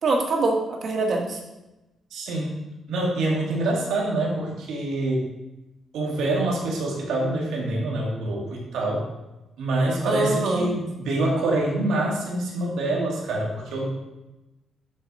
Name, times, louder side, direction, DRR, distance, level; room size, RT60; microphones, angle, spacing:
voice 1, 0.0-1.4 10.0-10.8, right 2 dB, 55° right, 1 dB, 1.6 m, -24 dB
voice 2, 2.1-2.6 2.9-5.3 5.9-9.1 9.6-13.9, right 2 dB, 90° right, -2 dB, 2.0 m, -26 dB
7.4 x 6.2 x 4.2 m, 1.0 s
cardioid pair, 115°, 0 cm